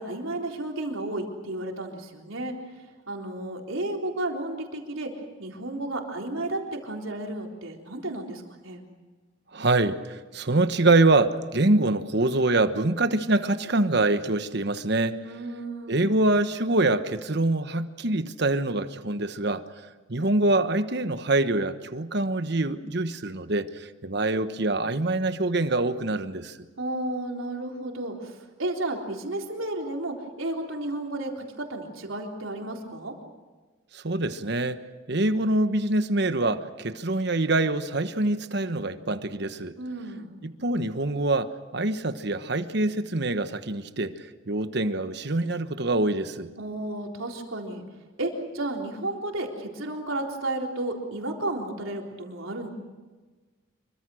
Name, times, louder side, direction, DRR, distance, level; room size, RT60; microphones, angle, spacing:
voice 1, 0.0-2.5 3.1-5.1 5.4-8.8 15.2-16.0 26.8-33.2 39.8-40.3 46.6-47.8 48.2-52.7, right 2 dB, 90° right, 3.8 m, -32 dB
voice 2, 9.5-15.2 15.9-19.6 20.1-26.6 33.9-34.8 35.1-39.7 40.4-46.5, right 2 dB, 55° right, 1.2 m, -25 dB
26.0 x 24.0 x 6.4 m
head